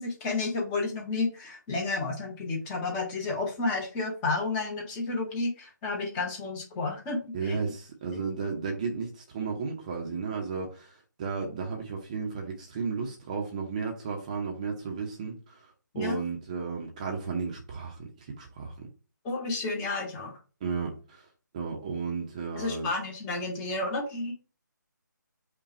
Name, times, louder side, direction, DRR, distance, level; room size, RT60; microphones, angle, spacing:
voice 1, 0.0-7.6 8.1-8.2 15.9-16.2 19.2-20.4 22.6-24.3, left 3 dB, 15° left, 0 dB, 0.8 m, -31 dB
voice 2, 7.3-15.7 15.9-18.7 20.6-21.3 21.5-22.9, right 5 dB, 20° right, 1 dB, 0.6 m, -34 dB
5.4 x 2.2 x 4.2 m, 0.35 s
figure-of-eight pair, 150°, 11 cm